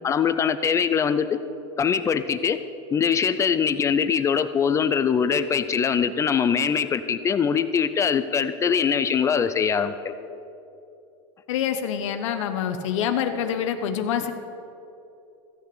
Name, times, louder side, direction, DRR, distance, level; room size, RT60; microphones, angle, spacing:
voice 1, 0.0-1.4 1.8-2.6 2.9-10.1, left 7 dB, 20° left, 11 dB, 0.4 m, -22 dB
voice 2, 11.5-14.3, left 8 dB, 85° left, 7 dB, 1.0 m, -26 dB
15.0 x 6.7 x 7.7 m, 2.7 s
supercardioid pair, 150°, 15 cm